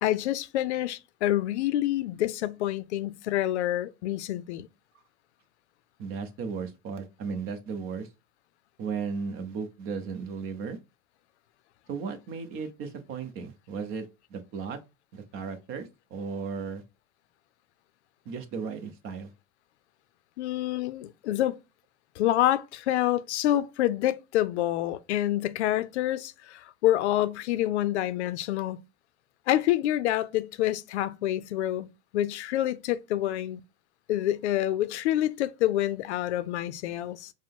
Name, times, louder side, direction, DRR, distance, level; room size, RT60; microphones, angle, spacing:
voice 1, 0.0-4.7 20.4-21.6 22.2-28.8 29.5-31.9 32.1-33.6 34.1-37.3, left 13 dB, 85° left, 0.5 m, -27 dB
voice 2, 6.0-8.1 8.8-10.8 11.9-14.8 15.1-16.8 18.2-19.3, right 5 dB, 40° right, 0.9 m, -35 dB
4.9 x 2.2 x 3.7 m
supercardioid pair, 130°, 33 cm